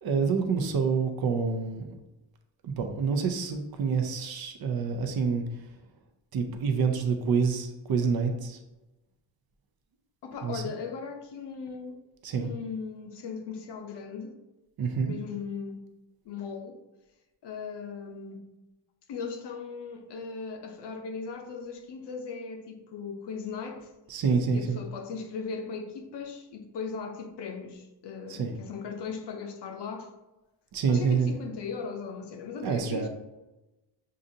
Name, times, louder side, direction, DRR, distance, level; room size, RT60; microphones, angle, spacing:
voice 1, 0.0-1.9 2.6-5.4 6.3-8.6 10.4-10.6 12.2-12.5 14.8-15.1 24.1-24.8 28.3-28.5 30.7-31.3 32.6-33.1, right 5 dB, 55° right, 0.6 m, -27 dB
voice 2, 10.2-12.0 12.4-14.4 15.1-15.8 16.3-16.8 17.4-18.4 19.1-23.9 24.5-30.1 30.9-33.1, left 5 dB, 60° left, 0.7 m, -38 dB
6.5 x 2.5 x 2.7 m
wide cardioid pair, 155°, 46 cm